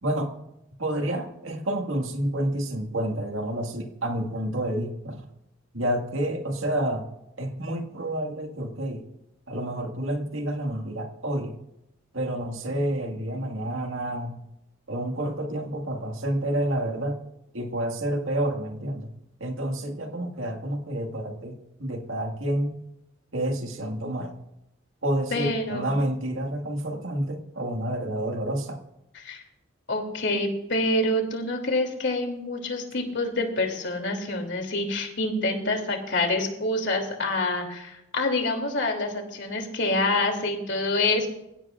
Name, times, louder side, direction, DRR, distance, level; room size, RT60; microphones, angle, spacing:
voice 1, 0.0-0.3 0.8-5.3 5.7-7.1 7.4-9.1 9.5-11.6 12.1-14.3 14.9-17.2 17.5-19.1 19.4-22.7 23.3-24.4 25.0-28.8, right 1 dB, 75° right, 4 dB, 1.9 m, -29 dB
voice 2, 25.3-26.0 29.1-29.4 29.9-41.3, left 2 dB, 60° left, 3 dB, 3.0 m, -27 dB
27.0 x 16.0 x 2.5 m, 0.89 s
head